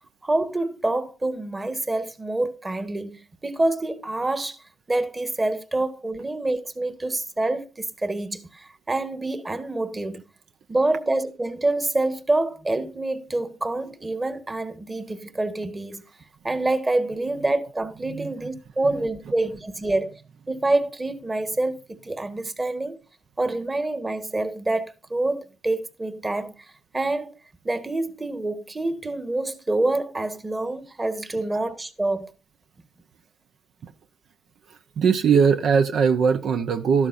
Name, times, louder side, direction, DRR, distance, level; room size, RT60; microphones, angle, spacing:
voice 1, 0.2-4.6 4.9-10.2 10.7-16.0 16.4-20.1 20.5-23.0 23.4-26.5 26.9-27.3 27.6-32.3, right 2 dB, 20° right, 1.5 m, -26 dB
voice 2, 34.7-37.1, right 6 dB, 65° right, 0.8 m, -21 dB
13.0 x 12.0 x 2.6 m
cardioid pair, 90°, 0 cm